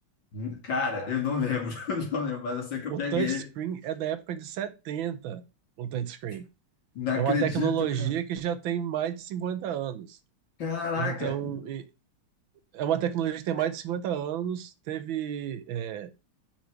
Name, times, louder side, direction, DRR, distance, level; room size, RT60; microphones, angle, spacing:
voice 1, 0.3-3.5 6.9-8.1 10.6-11.6, left 5 dB, 65° left, 3.2 m, -30 dB
voice 2, 2.9-5.4 5.8-6.5 7.1-10.2 11.0-11.9 12.7-16.1, right 10 dB, 75° right, 1.6 m, -31 dB
5.8 x 5.3 x 6.4 m
omnidirectional pair, 2.3 m